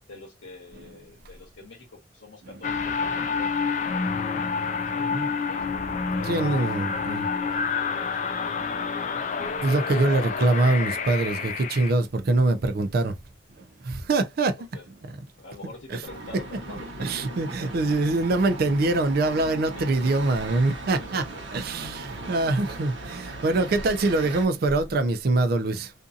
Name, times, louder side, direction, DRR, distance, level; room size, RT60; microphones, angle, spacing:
voice 1, 0.1-5.7 6.1-9.4 10.0-10.3 14.7-14.9 15.4-17.8 19.7-19.9 21.0-21.4, left 3 dB, 80° left, 0.9 m, -46 dB
sound 1, 2.6-11.9, left 5 dB, 40° left, 0.4 m, -28 dB
voice 2, 6.3-7.2 9.6-13.2 13.6-14.6 17.0-21.2 21.5-25.9, right 2 dB, 55° right, 0.4 m, -24 dB
sound 2, 16.0-24.5, right 2 dB, 75° right, 0.9 m, -38 dB
2.6 x 2.5 x 2.4 m
head